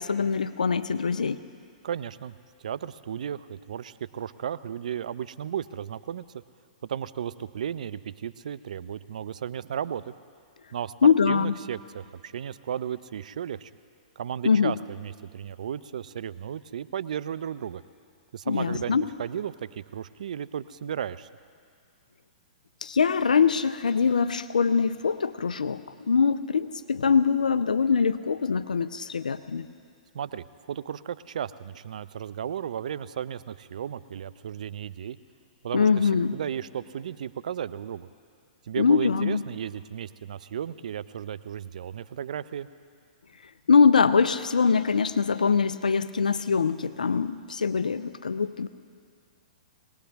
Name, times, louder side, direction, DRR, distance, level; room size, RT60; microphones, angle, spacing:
voice 1, 0.0-1.4 11.0-11.5 14.4-14.8 18.5-19.1 22.8-25.8 26.1-29.7 35.7-36.4 38.8-39.4 43.7-48.7, left 5 dB, 85° left, 13 dB, 0.5 m, -23 dB
voice 2, 1.8-2.3 2.6-6.2 6.9-10.1 10.7-10.9 11.3-13.7 14.2-17.8 18.3-21.3 30.1-35.2 35.6-38.1 38.7-42.7, right 9 dB, 70° right, 14 dB, 0.5 m, -34 dB
22.0 x 18.5 x 3.5 m, 2.3 s
hypercardioid pair, 120°, 4 cm